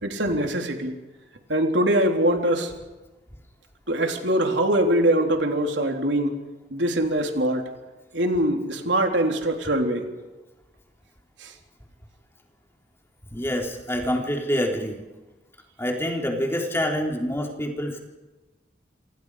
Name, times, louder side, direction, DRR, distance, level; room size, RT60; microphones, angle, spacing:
voice 1, 0.0-0.9 1.5-2.7 3.9-6.4 6.7-7.6 8.1-10.1 11.4-11.5, right 1 dB, 80° right, 3 dB, 3.7 m, -23 dB
voice 2, 13.3-15.0 15.8-18.0, equal, 15° left, 0 dB, 4.1 m, -26 dB
27.5 x 27.5 x 5.1 m, 1.1 s
head